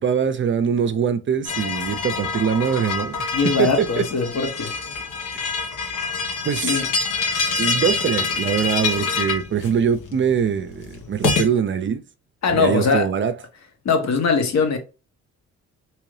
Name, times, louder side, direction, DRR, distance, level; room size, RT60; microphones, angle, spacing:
voice 1, 0.0-3.3 3.6-4.0 6.4-6.8 7.6-12.0 12.5-13.3, right 7 dB, 40° right, 0.5 m, -22 dB
sound 1, 1.5-11.5, left 4 dB, 80° left, 1.1 m, -26 dB
voice 2, 3.3-4.7 6.6-6.9 12.4-13.1 13.8-14.8, left 5 dB, 60° left, 1.2 m, -21 dB
3.7 x 3.0 x 3.2 m
cardioid pair, 90°, 30 cm